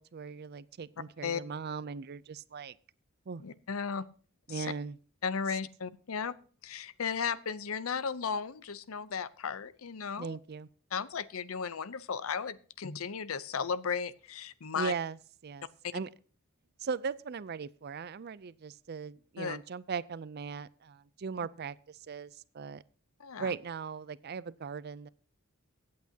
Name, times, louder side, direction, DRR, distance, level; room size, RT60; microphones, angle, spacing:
voice 1, 0.0-2.7 3.3-3.4 4.5-5.0 10.2-10.7 14.8-15.2 15.4-15.7 15.9-16.1 16.8-22.8 23.4-25.1, right 5 dB, 50° right, 18 dB, 0.5 m, -38 dB
voice 2, 3.4-4.1 4.5-4.7 5.2-6.3 6.6-10.4 10.9-14.9 19.4-19.6 23.2-23.5, left 6 dB, 85° left, 16 dB, 0.7 m, -35 dB
23.5 x 8.6 x 2.8 m, 0.41 s
head